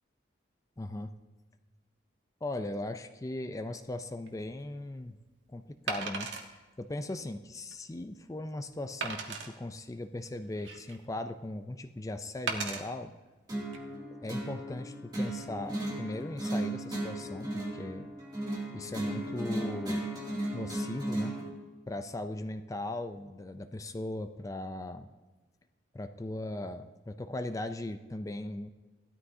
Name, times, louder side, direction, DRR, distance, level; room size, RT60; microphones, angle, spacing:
voice 1, 0.8-1.1 2.4-5.2 5.5-13.1 14.2-18.1 18.7-20.1 20.5-21.3 21.9-25.1 25.9-28.7, left 1 dB, 20° left, 9 dB, 0.4 m, -38 dB
Wood, 4.3-4.4 5.9-6.5 7.1-7.2 7.7-7.8 9.0-9.5 10.3-11.1 12.5-12.8 13.6-13.8, right 4 dB, 75° right, 1.4 m, -36 dB
sound 1, 13.5-21.5, right 1 dB, 20° right, 2.6 m, -35 dB
16.5 x 13.0 x 2.7 m, 1.2 s
head